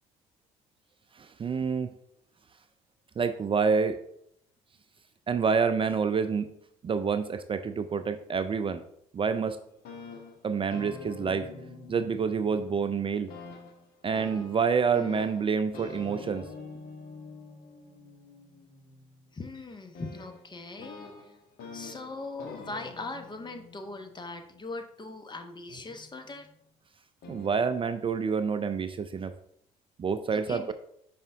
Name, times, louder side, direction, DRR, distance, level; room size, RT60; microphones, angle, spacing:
voice 1, 1.2-1.9 3.2-4.0 5.3-6.5 6.8-8.8 9.1-9.6 10.4-11.5 11.9-13.3 14.0-16.5 27.3-29.3 30.0-30.7, right 5 dB, 35° right, 10 dB, 0.4 m, -28 dB
sound 1, 9.8-12.9 13.3-24.8 25.7-26.5 27.2-27.6, left 3 dB, 70° left, 1.2 m, -46 dB
voice 2, 19.3-21.0 21.7-26.5 30.3-30.7, left 3 dB, 30° left, 7 dB, 1.0 m, -40 dB
5.4 x 5.1 x 3.4 m, 0.72 s
hypercardioid pair, 60°, 16 cm